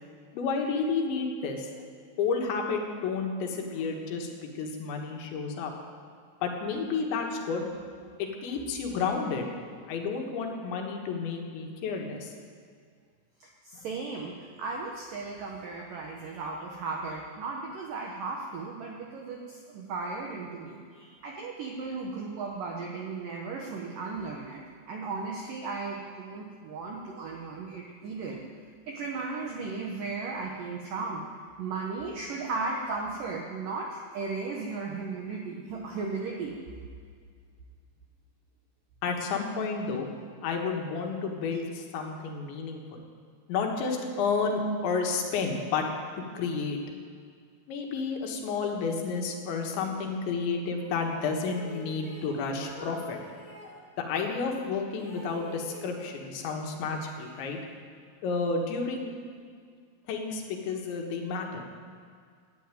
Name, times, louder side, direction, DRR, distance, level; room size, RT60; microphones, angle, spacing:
voice 1, 0.3-1.7 2.2-5.7 6.4-7.7 8.2-9.5 9.9-12.3 13.7-13.9 39.0-40.1 40.4-43.0 43.5-45.8 46.2-46.8 47.7-53.2 54.0-57.6 58.2-59.1 60.1-61.7, left 4 dB, 70° left, 2 dB, 3.7 m, -31 dB
voice 2, 13.4-24.6 24.9-28.4 28.9-31.3 31.6-36.6, right 4 dB, 75° right, 0 dB, 2.0 m, -36 dB
sound 1, 50.9-53.8 54.5-56.4 56.8-57.9, left 1 dB, 5° left, 1.5 m, -46 dB
13.0 x 10.0 x 9.1 m, 2.1 s
omnidirectional pair, 5.6 m